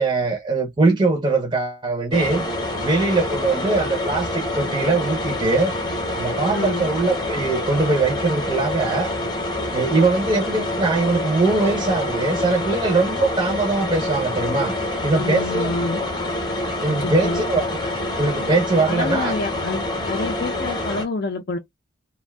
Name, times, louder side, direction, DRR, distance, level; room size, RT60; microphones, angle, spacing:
voice 1, 0.0-2.5 2.8-5.7 6.1-9.1 9.7-14.8 15.0-15.7 16.8-17.8 18.2-19.3, right 3 dB, 25° right, 0.5 m, -21 dB
sound 1, 2.1-21.1, left 1 dB, 20° left, 0.8 m, -26 dB
voice 2, 6.5-6.8 15.1-16.0 17.0-17.5 18.9-21.6, left 3 dB, 50° left, 0.5 m, -27 dB
2.5 x 2.2 x 3.3 m
head